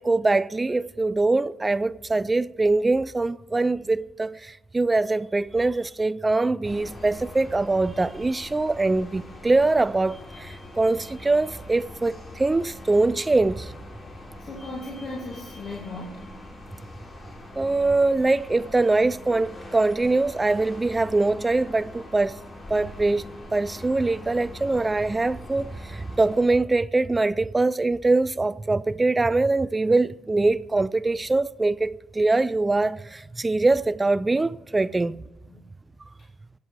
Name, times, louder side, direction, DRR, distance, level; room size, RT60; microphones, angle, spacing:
voice 1, 0.0-13.7 17.6-22.4 22.7-35.2, right 2 dB, 20° right, 0.3 m, -23 dB
sound 1, 6.6-26.4, left 1 dB, 30° left, 6.0 m, -43 dB
voice 2, 14.4-16.2 17.4-17.5 35.5-35.7, left 2 dB, 55° left, 2.7 m, -37 dB
20.5 x 8.3 x 4.7 m
cardioid pair, 90°, 0 cm